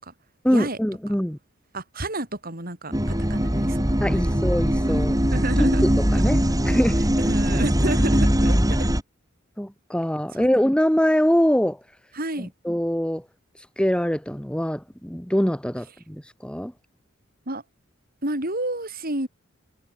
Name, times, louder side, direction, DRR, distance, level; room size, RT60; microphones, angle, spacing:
voice 1, 0.4-1.4 4.0-5.1 5.8-7.0 9.6-11.8 12.4-13.2 13.8-16.7, equal, 5° left, 1.3 m, -23 dB
voice 2, 1.7-4.2 4.9-5.8 7.2-8.9 10.4-10.5 12.1-12.5 17.5-17.6 18.2-19.3, right 1 dB, 45° right, 7.6 m, -30 dB
sound 1, 2.9-9.0, equal, 20° right, 3.8 m, -21 dB
head